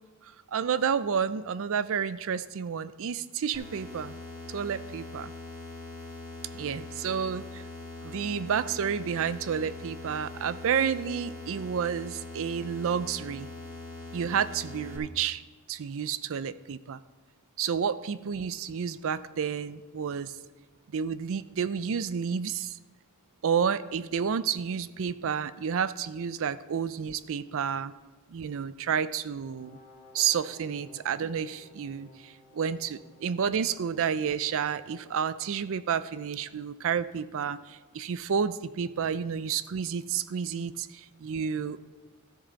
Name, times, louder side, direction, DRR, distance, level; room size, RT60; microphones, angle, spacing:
voice 1, 0.2-4.2 4.5-5.3 6.5-7.6 8.0-13.5 14.1-15.4 15.7-17.0 17.6-20.4 20.9-22.8 23.4-27.9 28.3-29.8 30.1-41.8, right 7 dB, 65° right, 15 dB, 0.4 m, -30 dB
sound 1, 3.5-15.0, left 2 dB, 15° right, 2.2 m, -42 dB
Brass instrument, 29.4-35.3, left 1 dB, 35° left, 2.1 m, -56 dB
14.0 x 6.5 x 4.1 m, 1.3 s
head